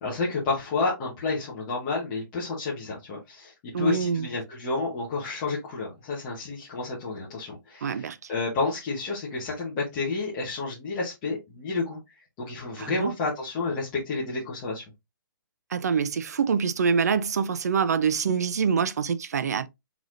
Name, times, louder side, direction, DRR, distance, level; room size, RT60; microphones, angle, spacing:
voice 1, 0.0-12.0 12.4-14.8, left 3 dB, 15° left, 1.0 m, -30 dB
voice 2, 3.7-4.3 7.8-8.2 12.8-13.1 15.7-19.7, right 6 dB, 50° right, 0.5 m, -25 dB
4.8 x 3.9 x 2.5 m
hypercardioid pair, 175°, 12 cm